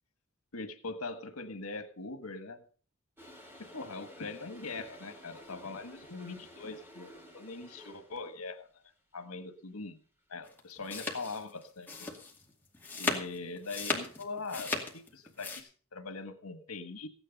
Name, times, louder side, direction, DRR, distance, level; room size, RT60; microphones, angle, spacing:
voice 1, 0.5-2.6 3.7-8.7 9.1-10.0 10.3-12.1 12.9-17.1, left 3 dB, 90° left, 8 dB, 1.5 m, -42 dB
Toilet flush, 3.2-8.4, equal, 10° right, 2.7 m, -53 dB
sound 1, 10.4-15.6, left 3 dB, 10° left, 2.3 m, -36 dB
15.5 x 9.9 x 5.3 m, 0.42 s
head